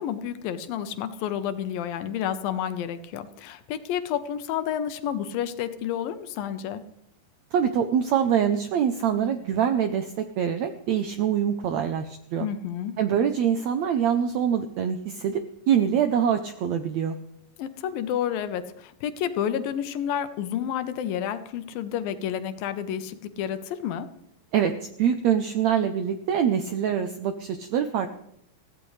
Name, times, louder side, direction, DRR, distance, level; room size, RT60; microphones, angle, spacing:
voice 1, 0.0-6.8 12.4-13.0 17.6-24.1, left 9 dB, 80° left, 11 dB, 2.7 m, -30 dB
voice 2, 7.5-12.5 13.0-15.4 15.7-17.2 24.5-28.1, right 8 dB, 80° right, 8 dB, 1.6 m, -24 dB
22.5 x 15.5 x 3.2 m, 0.76 s
omnidirectional pair, 4.1 m